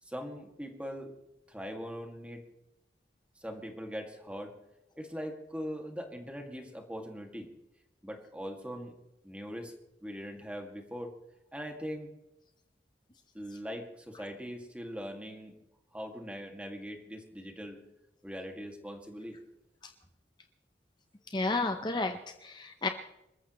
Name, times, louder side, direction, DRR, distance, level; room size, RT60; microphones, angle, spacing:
voice 1, 0.0-1.2 1.5-2.4 3.4-4.6 5.0-7.5 8.0-9.0 9.2-9.7 10.0-11.2 11.5-12.2 13.3-15.5 15.9-17.8 18.2-19.4, equal, 5° right, 3 dB, 2.1 m, -41 dB
voice 2, 21.3-22.9, left 3 dB, 25° left, 6 dB, 0.7 m, -32 dB
27.5 x 14.0 x 3.1 m, 0.92 s
head